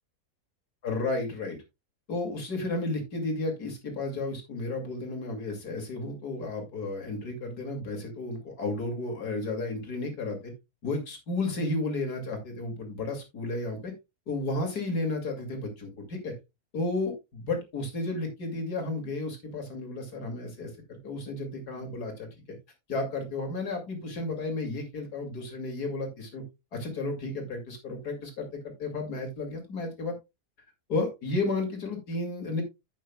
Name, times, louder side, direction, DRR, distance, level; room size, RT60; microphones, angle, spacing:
voice 1, 0.8-1.6 2.1-10.5 10.8-13.9 14.3-16.3 16.7-22.3 22.9-26.4 26.7-30.1 30.9-32.6, left 2 dB, 85° left, 3 dB, 3.1 m, -33 dB
11.0 x 8.4 x 2.3 m, 0.22 s
omnidirectional pair, 1.6 m